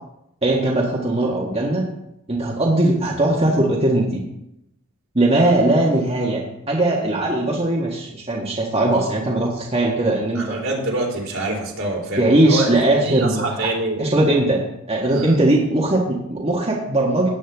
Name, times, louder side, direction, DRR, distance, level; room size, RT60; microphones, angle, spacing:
voice 1, 0.4-1.9 2.3-4.2 5.2-10.6 12.2-13.5 14.0-14.6 14.9-17.3, right 1 dB, 30° right, -3 dB, 1.6 m, -19 dB
voice 2, 10.4-14.1 15.1-15.4, right 2 dB, 70° right, -1 dB, 3.4 m, -26 dB
17.0 x 8.6 x 3.5 m, 0.83 s
head